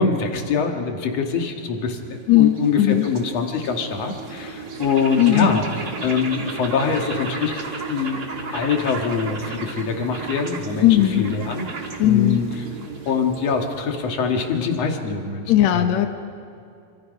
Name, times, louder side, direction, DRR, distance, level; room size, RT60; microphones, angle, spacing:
voice 1, 0.0-5.6 6.0-8.2 8.5-11.7 12.0-12.4 13.1-15.9, left 5 dB, 50° left, 3 dB, 2.5 m, -24 dB
sound 1, 1.8-15.2, right 4 dB, 40° right, 1.5 m, -34 dB
voice 2, 2.3-3.1 5.2-5.6 10.8-11.3 12.0-12.4 15.5-16.1, left 13 dB, 80° left, 6 dB, 1.5 m, -17 dB
26.5 x 26.0 x 5.4 m, 2.5 s
omnidirectional pair, 4.5 m